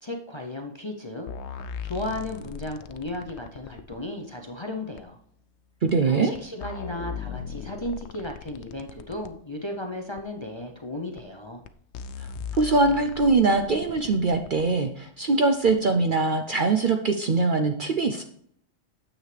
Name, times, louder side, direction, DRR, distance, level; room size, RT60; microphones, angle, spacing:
voice 1, 0.0-1.3 1.8-5.2 6.0-11.6, left 1 dB, 30° left, 2 dB, 0.6 m, -35 dB
sound 1, 1.3-4.0 5.0-5.1 5.9-6.0 6.3-9.3 10.2-10.3 11.2-11.3 11.6-11.7 11.9-14.7 15.7-15.8, left 7 dB, 65° left, 0.8 m, -38 dB
voice 2, 5.8-6.3 12.2-18.2, right 3 dB, 55° right, 6 dB, 0.6 m, -22 dB
9.4 x 7.3 x 3.3 m, 0.68 s
omnidirectional pair, 1.3 m